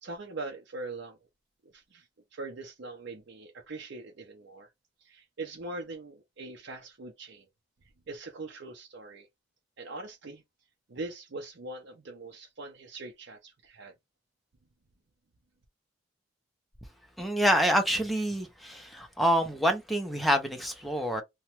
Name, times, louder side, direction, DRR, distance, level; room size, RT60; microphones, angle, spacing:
voice 1, 0.0-1.2 1.7-4.7 5.0-7.5 8.1-9.3 9.8-10.4 10.9-13.9, right 2 dB, 80° right, 0.6 m, -42 dB
voice 2, 17.2-21.2, equal, ahead, 0.6 m, -27 dB
2.9 x 2.2 x 2.9 m
head